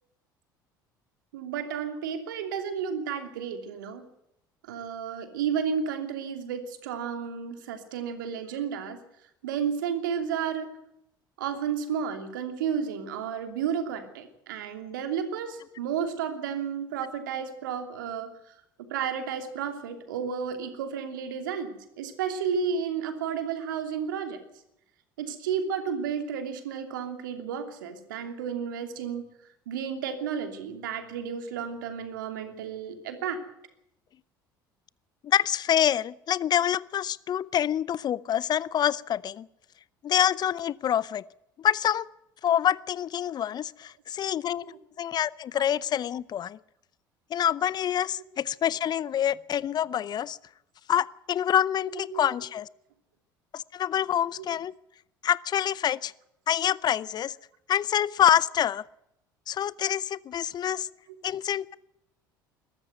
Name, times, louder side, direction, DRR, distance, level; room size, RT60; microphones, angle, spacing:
voice 1, 1.3-4.0 4.6-9.0 9.4-10.7 11.4-18.5 18.9-24.4 25.2-29.3 29.7-33.4 44.6-44.8 45.5-45.6 51.9-52.2 54.4-54.5, right 7 dB, 70° right, 7 dB, 2.9 m, -32 dB
voice 2, 35.2-39.5 40.0-41.2 41.6-42.1 42.4-46.6 47.3-50.4 50.9-52.7 53.5-54.7 55.2-56.1 56.5-57.3 57.7-58.8 59.5-60.9 61.2-61.8, left 10 dB, 40° left, 22 dB, 0.7 m, -26 dB
21.5 x 13.5 x 9.3 m, 0.81 s
figure-of-eight pair, 65°, 11 cm